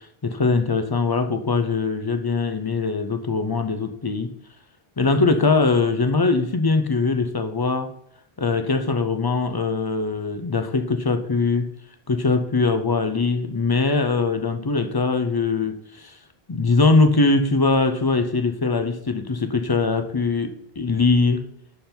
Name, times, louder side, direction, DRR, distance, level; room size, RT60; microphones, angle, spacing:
voice 1, 0.0-4.3 5.0-7.9 8.4-11.7 12.1-16.2 16.5-20.5 20.8-21.4, left 3 dB, 30° left, 8 dB, 0.4 m, -21 dB
11.0 x 3.9 x 4.4 m, 0.70 s
omnidirectional pair, 1.1 m